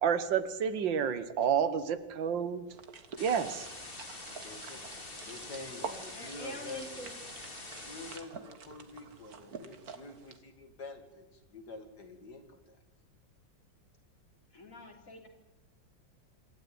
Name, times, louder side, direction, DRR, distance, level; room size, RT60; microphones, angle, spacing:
voice 1, 0.0-2.7 3.2-3.7, right 7 dB, 85° right, 12 dB, 2.0 m, -29 dB
sound 1, 2.7-10.4, right 5 dB, 55° right, 1.9 m, -48 dB
sound 2, 3.2-8.2, left 2 dB, 30° left, 2.8 m, -45 dB
voice 2, 4.4-7.1 7.8-12.8, left 2 dB, 60° left, 6 dB, 2.8 m, -47 dB
voice 3, 6.1-7.1 14.5-15.3, equal, 45° left, 3 dB, 3.8 m, -45 dB
27.0 x 13.5 x 9.5 m, 1.0 s
omnidirectional pair, 2.0 m